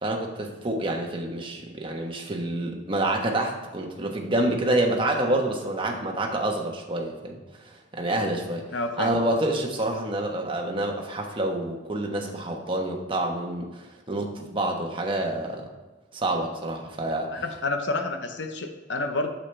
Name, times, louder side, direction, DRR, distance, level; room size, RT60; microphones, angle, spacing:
voice 1, 0.0-7.3 7.6-8.6 9.0-15.6 16.1-17.4, right 1 dB, 30° right, 1 dB, 1.1 m, -27 dB
voice 2, 8.7-9.1 17.3-19.3, left 2 dB, 75° left, 6 dB, 0.9 m, -29 dB
8.6 x 7.4 x 3.3 m, 1.2 s
head